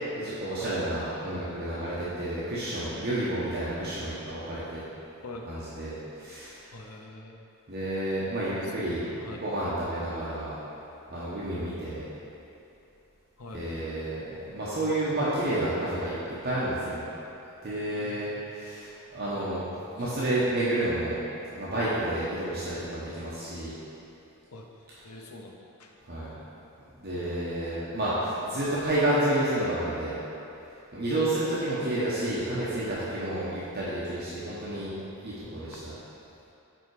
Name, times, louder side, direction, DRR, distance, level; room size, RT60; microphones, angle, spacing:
voice 1, 0.2-4.8 5.5-6.6 7.7-10.6 11.1-12.1 13.5-16.1 16.4-17.1 17.6-19.6 20.0-21.2 21.5-23.7 26.1-26.3 27.0-30.2 30.9-34.9 35.2-35.9, right 1 dB, 45° right, -9 dB, 0.9 m, -30 dB
voice 2, 6.7-7.4 8.6-9.4 13.4-13.7 17.7-18.4 19.3-19.5 20.0-20.1 24.5-25.9 32.8-33.0 35.4-35.8, left 2 dB, 80° left, 1 dB, 0.7 m, -46 dB
5.3 x 4.6 x 4.7 m, 2.8 s
head